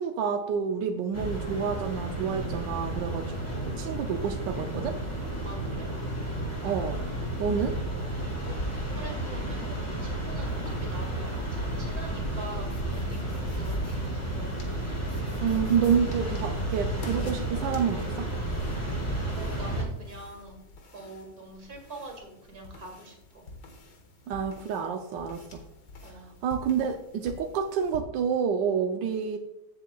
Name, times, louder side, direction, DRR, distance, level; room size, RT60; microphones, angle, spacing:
voice 1, 0.0-5.0 6.6-7.0 7.4-7.8 15.4-18.3 24.3-25.6 26.4-29.4, right 7 dB, 90° right, 5 dB, 1.3 m, -29 dB
sound 1, 1.1-19.8, right 1 dB, 15° left, 2.5 m, -32 dB
voice 2, 5.4-5.9 8.4-8.6 8.9-13.2 13.5-14.5 19.4-20.6 20.9-23.5 26.0-26.3, right 2 dB, 55° right, 2 dB, 2.5 m, -44 dB
sound 2, 10.4-28.0, left 2 dB, 80° left, 2.1 m, -48 dB
15.5 x 7.1 x 2.3 m, 0.89 s
omnidirectional pair, 1.9 m